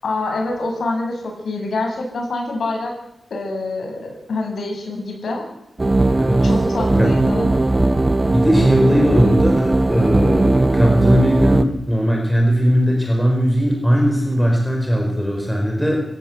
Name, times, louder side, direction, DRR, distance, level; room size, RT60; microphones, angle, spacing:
voice 1, 0.0-2.9 3.3-5.4 6.4-7.5, left 2 dB, 75° left, 1 dB, 7.8 m, -26 dB
sound 1, 5.8-11.6, right 2 dB, 20° right, 1.1 m, -17 dB
voice 2, 6.1-6.4 6.9-7.1 8.3-16.0, equal, ahead, 0 dB, 4.7 m, -18 dB
27.0 x 15.0 x 8.1 m, 0.79 s
wide cardioid pair, 140°, 0 cm